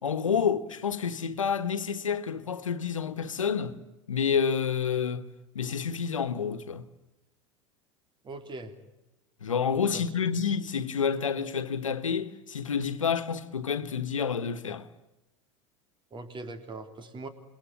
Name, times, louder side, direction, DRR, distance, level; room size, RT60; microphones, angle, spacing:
voice 1, 0.0-3.8 4.1-5.3 5.5-6.8 9.4-14.9, left 6 dB, 90° left, 1.3 m, -29 dB
voice 2, 8.2-8.7 9.9-10.0 16.1-17.3, right 2 dB, 30° right, 3.5 m, -40 dB
28.0 x 22.0 x 8.8 m
hypercardioid pair, 85°, 16 cm